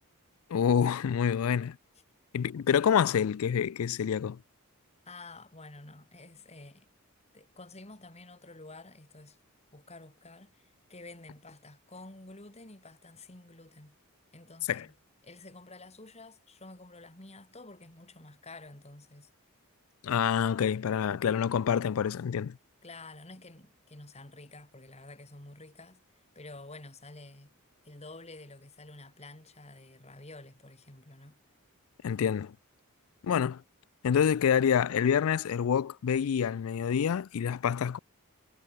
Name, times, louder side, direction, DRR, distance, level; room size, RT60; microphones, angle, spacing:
voice 1, 0.5-1.8 2.3-4.4 14.7-14.9 20.0-22.6 32.0-32.5 33.2-33.6 34.0-38.0, left 8 dB, 70° left, 0.4 m, -27 dB
voice 2, 5.1-6.9 7.3-9.4 9.7-14.0 14.3-14.9 15.2-19.3 22.8-26.0 26.4-27.5 27.8-31.4, left 2 dB, 30° left, 3.6 m, -50 dB
head